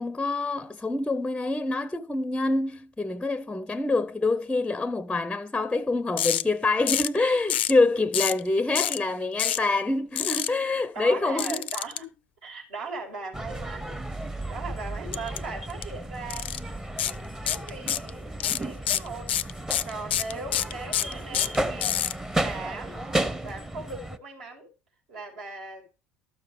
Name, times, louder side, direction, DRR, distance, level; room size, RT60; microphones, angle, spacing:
voice 1, 0.0-11.7, left 3 dB, 10° left, 0.7 m, -26 dB
sound 1, 6.2-6.4 6.9-7.2 7.5-7.8 8.1-8.4 8.7-9.0 9.4-9.6 10.2-10.5 11.4-12.0 15.1-15.4 15.7-15.8 16.3-16.6 17.0-17.1 17.5-18.1 18.4-22.1, left 11 dB, 70° left, 0.5 m, -26 dB
voice 2, 10.9-13.9 14.3-16.5 17.4-22.0 22.3-24.7 25.1-25.9, right 3 dB, 65° right, 5.3 m, -39 dB
sound 2, 13.3-24.2, right 1 dB, 10° right, 1.0 m, -33 dB
13.0 x 6.8 x 5.0 m
figure-of-eight pair, 65°, 6 cm